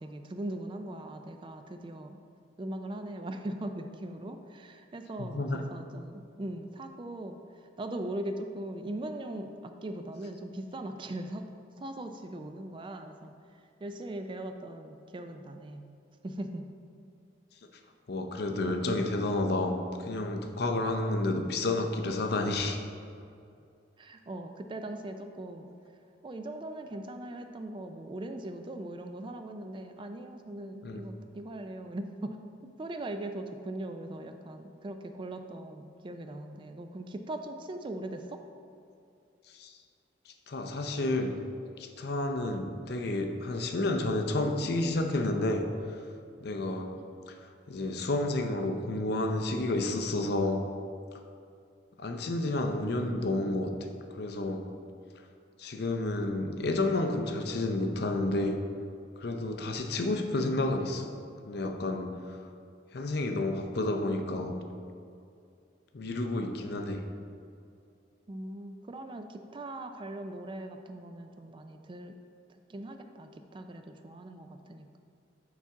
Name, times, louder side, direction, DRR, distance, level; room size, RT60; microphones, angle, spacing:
voice 1, 0.0-2.2 2.6-11.5 11.8-15.8 16.2-16.7 24.0-25.7 26.2-32.4 32.8-38.4 68.3-72.2 72.5-75.0, right 1 dB, 25° right, 6 dB, 0.3 m, -40 dB
voice 2, 5.2-5.6 18.1-22.8 30.8-31.0 39.5-39.8 40.3-41.3 41.8-46.0 46.4-47.0 47.3-47.4 47.7-50.6 52.0-53.7 54.1-54.7 55.6-58.6 59.2-61.1 61.5-62.4 62.9-64.6 65.9-67.0, left 2 dB, 55° left, 5 dB, 0.5 m, -30 dB
7.1 x 5.7 x 3.6 m, 2.5 s
head